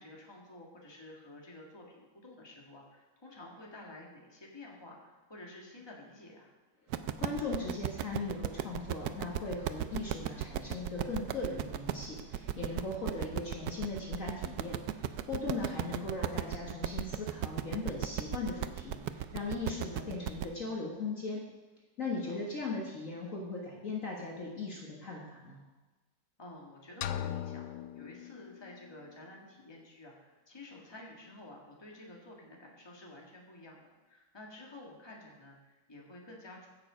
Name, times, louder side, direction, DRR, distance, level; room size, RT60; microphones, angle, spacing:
voice 1, 0.0-6.5 13.1-13.3 22.3-22.5 26.4-36.7, left 2 dB, 15° left, -1 dB, 1.9 m, -51 dB
sound 1, 6.9-20.5, right 11 dB, 70° right, 1.0 m, -36 dB
voice 2, 7.2-21.4 22.0-25.6, left 3 dB, 45° left, -2 dB, 1.8 m, -38 dB
sound 2, 27.0-28.9, left 10 dB, 70° left, 1.0 m, -39 dB
15.5 x 6.8 x 5.1 m, 1.2 s
omnidirectional pair, 2.0 m